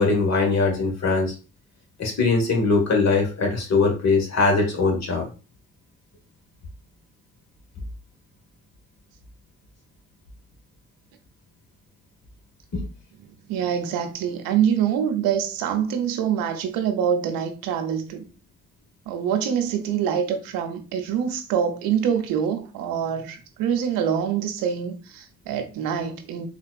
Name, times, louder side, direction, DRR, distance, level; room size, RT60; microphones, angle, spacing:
voice 1, 0.0-1.3 2.0-5.2 12.7-12.8, left 3 dB, 50° left, 1.3 m, -21 dB
voice 2, 13.5-18.2 19.1-26.5, right 8 dB, 75° right, 0.7 m, -25 dB
3.8 x 2.3 x 2.3 m
hypercardioid pair, 50°, 35 cm